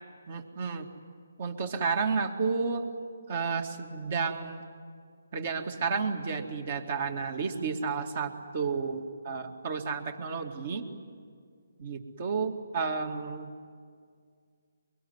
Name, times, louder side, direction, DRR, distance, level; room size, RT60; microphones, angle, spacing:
voice 1, 0.3-0.9 1.4-2.9 3.3-4.6 5.3-10.9 11.8-13.5, right 5 dB, 45° right, 5 dB, 2.2 m, -31 dB
23.5 x 23.0 x 9.7 m, 2.1 s
figure-of-eight pair, 150°, 0 cm